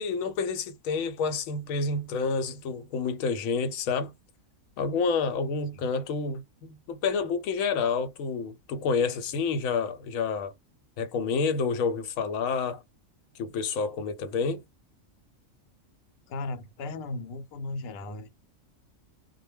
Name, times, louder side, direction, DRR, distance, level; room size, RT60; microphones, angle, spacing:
voice 1, 0.0-4.1 4.8-10.5 11.0-12.8 13.4-14.6, left 5 dB, 85° left, 1.0 m, -29 dB
voice 2, 16.3-18.3, left 2 dB, 60° left, 0.8 m, -36 dB
2.1 x 2.1 x 3.3 m
omnidirectional pair, 1.4 m